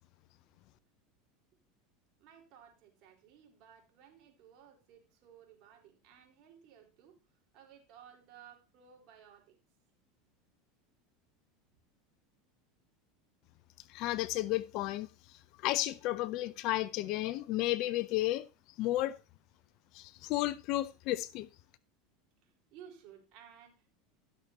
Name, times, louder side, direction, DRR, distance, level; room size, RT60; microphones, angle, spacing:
voice 1, 2.2-7.2 7.5-9.6 22.4-23.9, right 9 dB, 55° right, 4.3 m, -57 dB
voice 2, 13.9-15.1 15.6-18.4 18.8-19.2 19.9-21.5, left 16 dB, 60° left, 0.5 m, -32 dB
16.0 x 6.7 x 2.9 m
hypercardioid pair, 105°, 0 cm